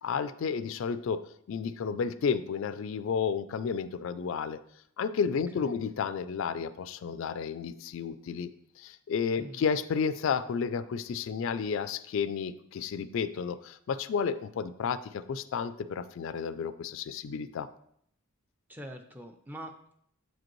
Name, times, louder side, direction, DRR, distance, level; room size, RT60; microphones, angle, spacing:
voice 1, 0.0-4.6 5.0-8.5 8.8-17.7, left 6 dB, 60° left, 13 dB, 0.3 m, -32 dB
voice 2, 18.7-20.0, equal, 10° right, 6 dB, 0.4 m, -44 dB
7.9 x 5.1 x 3.0 m, 0.70 s
head